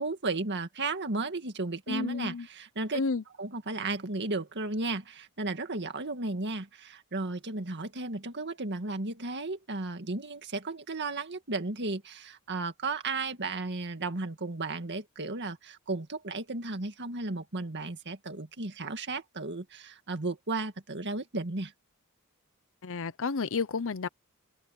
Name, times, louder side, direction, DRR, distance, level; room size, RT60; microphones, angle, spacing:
voice 1, 0.0-3.0 3.4-21.7, right 3 dB, 55° right, 2.0 m, -34 dB
voice 2, 1.9-2.5 2.9-3.2 22.8-24.1, left 4 dB, 65° left, 0.7 m, -31 dB
head